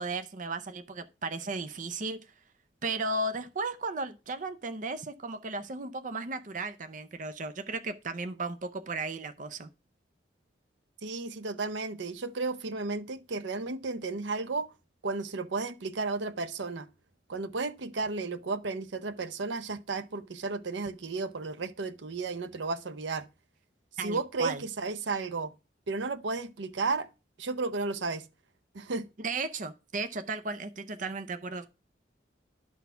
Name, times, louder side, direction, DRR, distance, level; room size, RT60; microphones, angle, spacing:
voice 1, 0.0-2.3 2.8-9.7 24.0-24.6 29.2-31.7, right 3 dB, 45° right, 0.6 m, -35 dB
voice 2, 11.0-14.7 15.0-16.9 17.3-23.3 24.0-25.5 25.9-27.1 27.4-28.3 28.7-29.1, right 3 dB, 80° right, 0.7 m, -33 dB
11.5 x 4.2 x 5.6 m
head